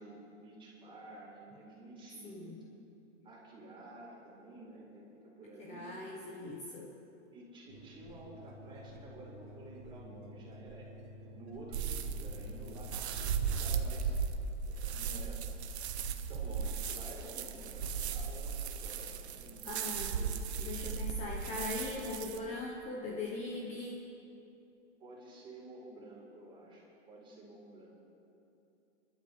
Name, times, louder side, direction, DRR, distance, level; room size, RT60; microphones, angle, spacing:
voice 1, 0.0-2.6 3.2-5.9 7.3-10.9 11.3-14.2 14.7-15.4 16.3-20.4 25.0-27.9, right 2 dB, 15° right, -5 dB, 4.2 m, -51 dB
voice 2, 2.2-2.6 5.6-6.9 19.6-20.1 20.6-24.1, left 2 dB, 20° left, -2 dB, 1.2 m, -40 dB
sound 1, 7.7-13.8, equal, 40° right, 2.9 m, -51 dB
sound 2, 11.7-22.4, right 6 dB, 65° right, 1.3 m, -36 dB
29.0 x 12.5 x 3.5 m, 2.8 s
hypercardioid pair, 155°, 35 cm